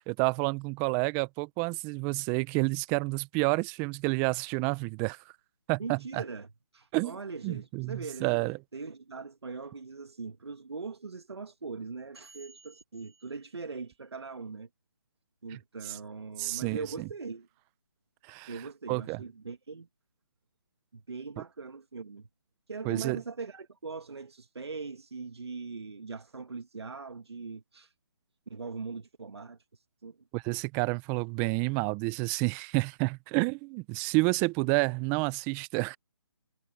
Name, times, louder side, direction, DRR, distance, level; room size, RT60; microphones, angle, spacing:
voice 1, 0.1-5.2 5.7-6.2 6.9-7.1 7.4-8.6 16.4-17.1 18.3-18.5 18.9-19.2 22.8-23.2 30.3-36.0, right 27 dB, 15° right, 0.5 m, -29 dB
voice 2, 5.8-8.4 8.7-14.7 15.4-17.5 18.5-19.9 20.9-22.3 22.7-27.9 28.5-29.6 30.0-30.2, right 4 dB, 80° right, 2.1 m, -41 dB
figure-of-eight pair, 155°, 14 cm